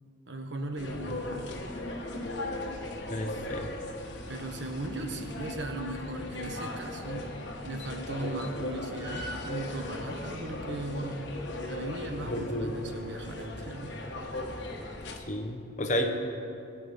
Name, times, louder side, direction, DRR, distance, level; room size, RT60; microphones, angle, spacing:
voice 1, 0.3-1.5 4.3-11.3 11.7-13.9, right 1 dB, 60° right, 5 dB, 1.2 m, -37 dB
sound 1, 0.8-15.2, left 1 dB, 60° left, 1.4 m, -38 dB
voice 2, 3.1-3.7 12.3-12.8 15.3-16.1, equal, 40° left, 4 dB, 1.1 m, -31 dB
18.0 x 9.0 x 5.2 m, 2.6 s
head